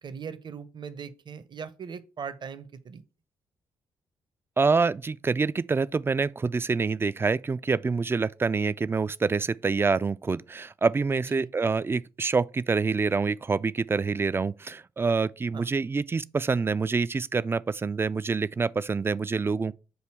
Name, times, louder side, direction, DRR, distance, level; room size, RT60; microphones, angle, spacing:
voice 1, 0.0-3.0 11.3-11.5 15.5-15.7, right 6 dB, 45° right, 0.7 m, -39 dB
voice 2, 4.6-19.7, right 4 dB, 20° right, 0.3 m, -26 dB
7.8 x 2.7 x 4.4 m
hypercardioid pair, 40°, 11 cm